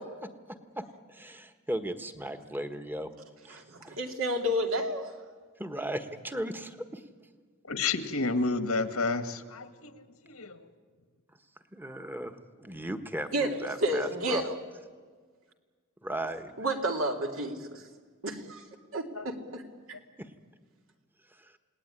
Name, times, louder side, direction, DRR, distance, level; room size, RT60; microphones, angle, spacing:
voice 1, 0.5-3.1 3.4-4.0 5.6-7.1 11.3-11.4 11.7-14.4 16.0-16.5 20.2-20.3 21.2-21.6, right 1 dB, 10° right, 8 dB, 1.4 m, -37 dB
voice 2, 3.5-5.2 13.3-14.5 16.6-17.9 18.2-18.6 18.9-19.6, right 1 dB, 70° right, 3 dB, 2.8 m, -31 dB
voice 3, 7.6-10.6 19.1-19.3, left 3 dB, 90° left, 9 dB, 1.9 m, -31 dB
29.0 x 18.5 x 9.9 m, 1.5 s
head